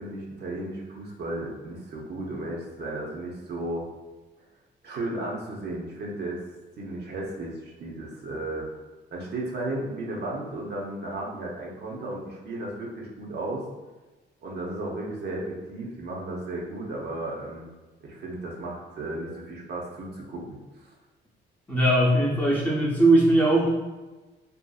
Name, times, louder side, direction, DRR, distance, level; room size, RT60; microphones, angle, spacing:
voice 1, 0.0-3.9 4.8-6.4 6.8-8.7 9.1-13.7 14.4-17.7 18.0-20.9, right 2 dB, 55° right, -3 dB, 0.7 m, -34 dB
voice 2, 21.7-23.7, right 1 dB, 10° left, -5 dB, 0.7 m, -20 dB
2.6 x 2.5 x 2.3 m, 1.2 s
cardioid pair, 90°, 20 cm